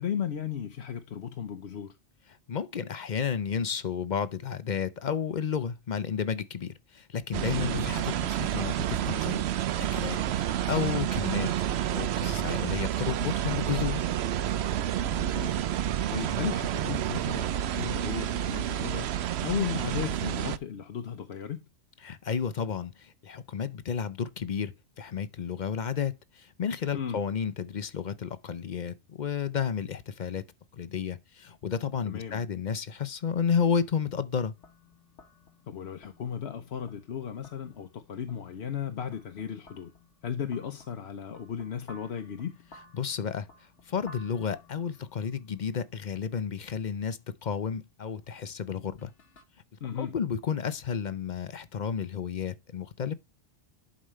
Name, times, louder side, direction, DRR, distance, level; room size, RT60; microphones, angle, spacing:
voice 1, 0.0-2.0 7.6-7.9 15.1-15.7 16.1-19.1 19.4-21.6 26.9-27.2 32.0-32.4 35.7-39.9 40.2-42.5 49.8-50.1, left 8 dB, 65° left, 1.1 m, -35 dB
voice 2, 2.5-9.5 9.7-10.2 10.5-14.1 22.0-30.5 30.7-34.5 42.9-43.5 43.9-49.1 50.0-53.1, left 7 dB, 50° left, 0.7 m, -32 dB
sound 1, 7.3-20.6, right 11 dB, 70° right, 0.8 m, -29 dB
sound 2, 34.6-49.4, left 2 dB, 90° left, 1.6 m, -57 dB
11.5 x 5.1 x 3.1 m
omnidirectional pair, 1.2 m